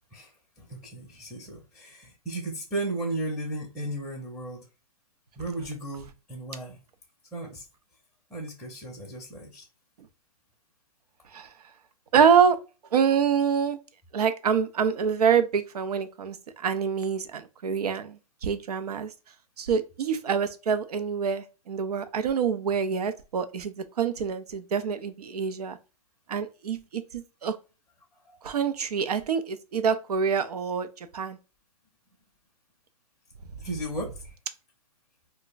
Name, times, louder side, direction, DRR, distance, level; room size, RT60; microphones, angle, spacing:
voice 1, 0.6-4.7 5.4-6.8 7.3-7.6 8.3-9.6 28.3-28.4 33.6-34.2, right 1 dB, ahead, 0.6 m, -35 dB
voice 2, 12.1-12.6 12.9-13.8 14.1-19.1 19.6-25.8 26.3-27.6 28.4-31.4, right 7 dB, 85° right, 0.6 m, -26 dB
2.4 x 2.1 x 3.9 m
hypercardioid pair, 140°, 20 cm